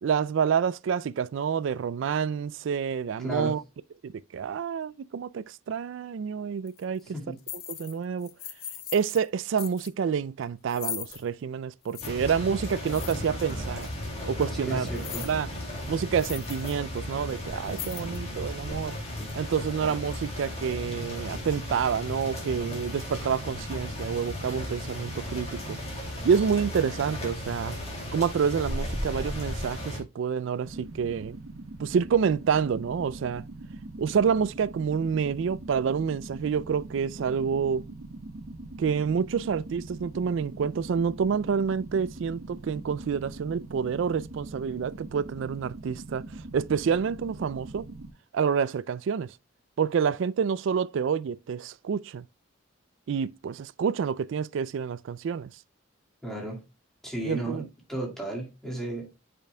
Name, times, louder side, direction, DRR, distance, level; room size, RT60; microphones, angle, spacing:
voice 1, 0.0-3.6 4.0-7.4 7.7-8.3 8.9-13.9 14.3-14.9 15.2-15.5 15.9-19.0 19.3-25.8 26.2-27.7 28.1-31.4 31.8-33.4 34.0-37.8 38.8-46.2 46.5-47.9 48.3-49.3 49.8-52.2 53.1-55.5 57.2-57.7, right 6 dB, 65° right, 0.3 m, -28 dB
voice 2, 3.2-3.6 7.1-7.4 14.6-15.3 56.2-56.6 57.0-59.2, right 1 dB, ahead, 2.0 m, -34 dB
sound 1, 6.7-6.8 7.4-7.9 8.2-9.2 9.6-9.9 10.7-11.2 11.9-12.1 12.9-13.5 13.8-13.9 14.9-15.4 15.7-15.8 16.2-16.7 17.1-17.2 17.6-18.3, left 11 dB, 50° left, 0.7 m, -39 dB
sound 2, 12.0-30.0, left 1 dB, 30° left, 2.4 m, -35 dB
sound 3, 30.6-48.1, right 2 dB, 80° right, 0.9 m, -42 dB
9.0 x 5.1 x 2.2 m
head